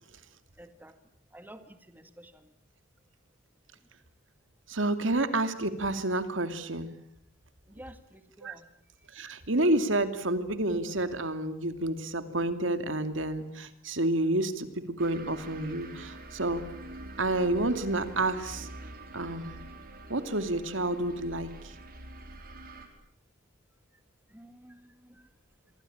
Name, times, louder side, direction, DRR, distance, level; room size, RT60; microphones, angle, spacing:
voice 1, 0.6-1.0 1.3-2.5 7.7-8.7 24.3-25.3, right 1 dB, 10° right, 8 dB, 1.9 m, -51 dB
voice 2, 4.7-7.0 8.4-8.5 9.1-16.6 17.2-18.7 19.1-19.5 20.1-21.7, right 1 dB, 70° right, 9 dB, 2.6 m, -29 dB
sound 1, 15.0-22.9, right 1 dB, 45° right, 5.2 m, -46 dB
28.0 x 24.0 x 8.8 m, 0.72 s
head